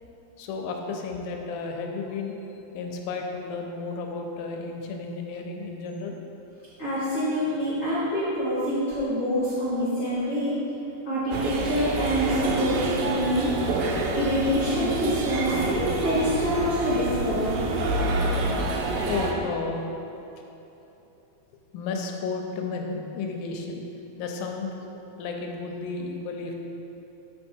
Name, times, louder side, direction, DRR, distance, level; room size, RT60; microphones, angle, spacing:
voice 1, 0.4-6.2 19.1-19.8 21.7-23.8 24.2-26.5, left 4 dB, 80° left, 2 dB, 2.3 m, -33 dB
voice 2, 6.8-10.5 11.0-13.5 14.1-17.6, equal, 55° left, -11 dB, 1.1 m, -26 dB
sound 1, 11.3-19.3, right 2 dB, 80° right, 2.3 m, -27 dB
7.0 x 5.4 x 4.4 m, 3.0 s
omnidirectional pair, 4.4 m